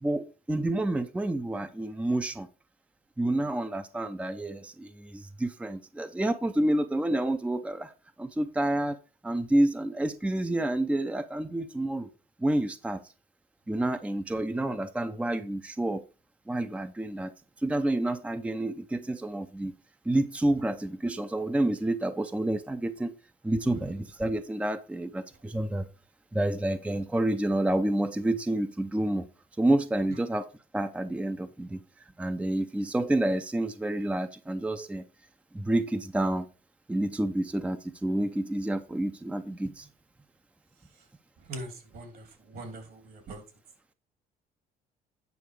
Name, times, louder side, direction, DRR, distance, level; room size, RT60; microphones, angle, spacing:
voice 1, 0.0-2.5 3.2-7.9 8.2-9.0 9.2-12.1 12.4-13.0 13.7-16.0 16.5-17.3 17.6-19.7 20.1-23.1 23.4-25.9 26.3-29.3 29.6-30.5 30.7-31.8 32.2-35.0 35.5-36.5 36.9-39.9, right 1 dB, 5° right, 0.6 m, -29 dB
voice 2, 41.5-43.4, right 1 dB, 60° right, 3.0 m, -42 dB
9.3 x 5.6 x 4.8 m
cardioid pair, 110°, 17 cm